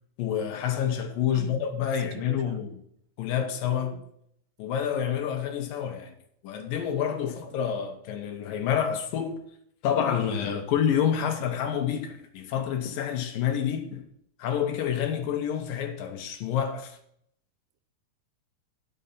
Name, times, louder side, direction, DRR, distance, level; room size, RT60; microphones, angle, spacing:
voice 1, 0.2-2.7 3.2-4.0 4.6-6.1 6.4-9.4 9.8-14.0 14.4-17.0, left 8 dB, 75° left, 2.8 m, -28 dB
voice 2, 1.3-2.6 3.6-4.1, right 12 dB, 90° right, 2.6 m, -44 dB
11.0 x 6.8 x 5.6 m
omnidirectional pair, 4.1 m